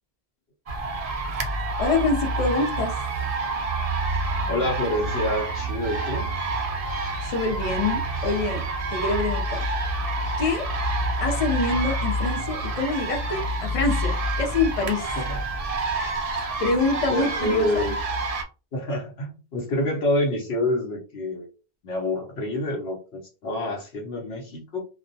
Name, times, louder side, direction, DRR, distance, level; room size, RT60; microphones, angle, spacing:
sound 1, 0.7-18.4, right 2 dB, 55° right, 0.4 m, -28 dB
voice 1, 1.8-2.9 7.2-8.6 8.9-9.6 10.4-10.7 11.2-15.1 16.6-17.9, left 3 dB, 40° left, 1 dB, 0.6 m, -25 dB
voice 2, 4.5-6.6 15.2-15.4 17.1-17.9 18.7-21.5 21.8-24.8, left 1 dB, 75° left, 0 dB, 0.9 m, -27 dB
2.2 x 2.2 x 2.6 m, 0.34 s
omnidirectional pair, 1.1 m